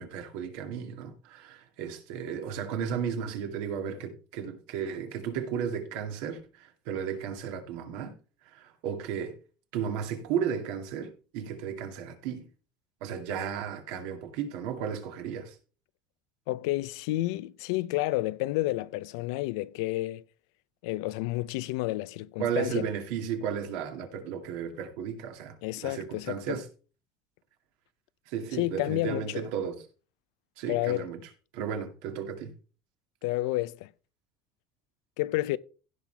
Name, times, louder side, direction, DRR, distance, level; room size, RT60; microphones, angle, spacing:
voice 1, 0.0-8.1 8.5-9.4 9.7-12.5 13.0-15.5 22.4-25.5 25.8-26.6 28.3-29.8 30.6-31.2 31.5-32.5, right 8 dB, 80° right, 2.3 m, -34 dB
voice 2, 16.5-20.2 20.8-22.9 25.6-26.6 28.5-29.4 30.7-31.1 33.2-33.9 35.2-35.6, left 18 dB, 85° left, 0.5 m, -30 dB
16.0 x 5.9 x 3.4 m
supercardioid pair, 125°, 2 cm